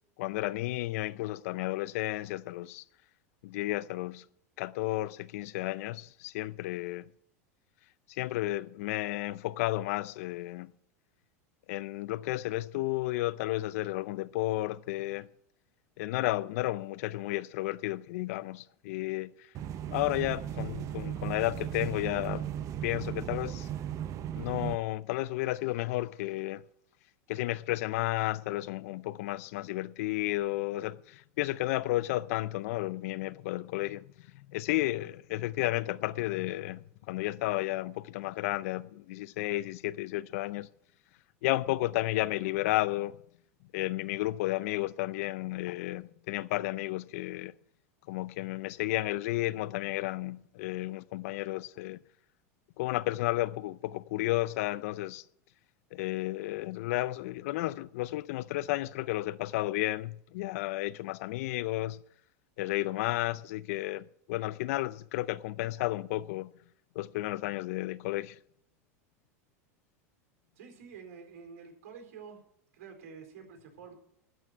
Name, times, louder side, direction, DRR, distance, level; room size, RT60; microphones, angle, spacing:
voice 1, 0.2-2.8 3.4-4.2 4.6-7.1 8.1-10.7 11.7-15.3 16.0-19.3 19.9-22.5 22.8-23.7 24.3-26.6 27.3-36.8 37.1-40.7 41.4-43.2 43.7-47.5 48.1-52.0 52.8-55.2 55.9-62.0 62.6-66.5 66.9-68.4, left 17 dB, 70° left, 0.6 m, -32 dB
sound 1, 19.5-24.7, right 10 dB, 40° right, 0.8 m, -36 dB
voice 2, 70.5-72.4 72.7-73.9, right 6 dB, 70° right, 4.4 m, -48 dB
12.5 x 6.0 x 9.3 m
hypercardioid pair, 110°, 8 cm